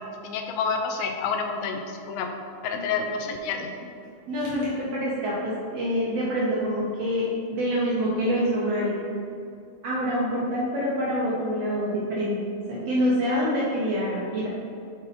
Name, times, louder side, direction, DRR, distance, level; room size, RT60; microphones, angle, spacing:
voice 1, 0.2-2.3 2.6-3.7, left 5 dB, 90° left, 3 dB, 2.4 m, -28 dB
voice 2, 4.3-8.9 9.8-12.4 12.7-14.5, equal, 70° right, -6 dB, 1.5 m, -26 dB
6.9 x 3.9 x 4.1 m, 2.5 s
omnidirectional pair, 4.1 m